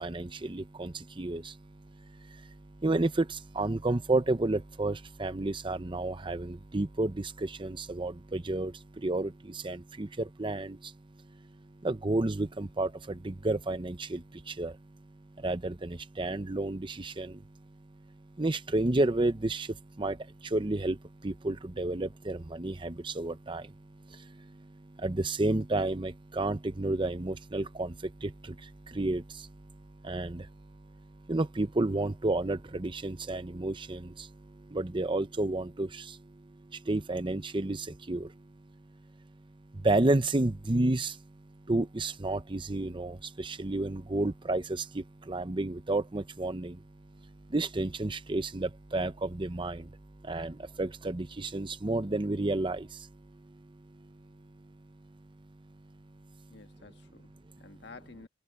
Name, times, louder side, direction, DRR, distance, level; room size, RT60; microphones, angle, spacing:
voice 1, 0.0-11.0 11.3-11.4 11.8-14.8 15.4-17.4 18.4-38.5 39.7-41.3 41.7-46.8 47.2-54.2 56.4-56.5, right 2 dB, 25° right, 0.7 m, -32 dB
voice 2, 56.5-58.3, left 3 dB, 65° left, 1.5 m, -51 dB
head